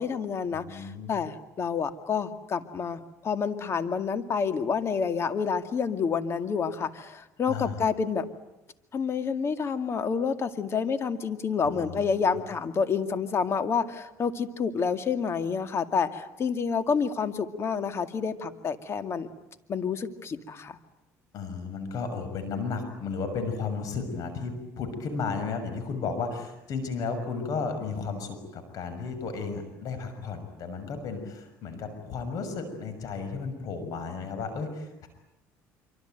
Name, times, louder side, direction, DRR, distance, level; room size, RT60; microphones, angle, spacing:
voice 1, 0.0-8.2 8.9-19.3 19.7-20.8, left 6 dB, 40° left, 9 dB, 2.2 m, -29 dB
voice 2, 0.5-1.2 7.5-7.9 11.6-12.4 21.3-35.1, left 4 dB, 60° left, 8 dB, 6.2 m, -34 dB
26.0 x 25.0 x 9.2 m, 0.90 s
supercardioid pair, 95°, 7 cm